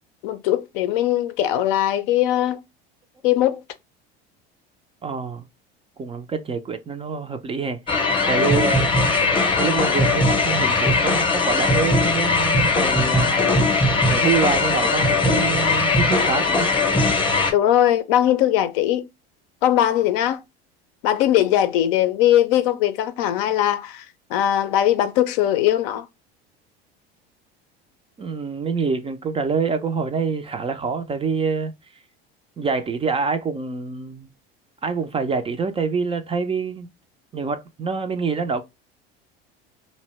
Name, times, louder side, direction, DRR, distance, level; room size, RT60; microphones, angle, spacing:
voice 1, 0.2-2.6 3.2-3.6 17.5-19.0 19.6-20.4 21.0-26.1, left 12 dB, 70° left, 0.5 m, -20 dB
voice 2, 5.0-5.5 6.0-8.9 9.6-13.4 14.1-16.7 28.2-31.7 32.6-34.3 34.8-36.9 37.3-38.6, right 5 dB, 20° right, 0.3 m, -26 dB
sound 1, 7.9-17.5, left 3 dB, 15° left, 0.7 m, -19 dB
2.6 x 2.0 x 2.9 m
hypercardioid pair, 85°, 30 cm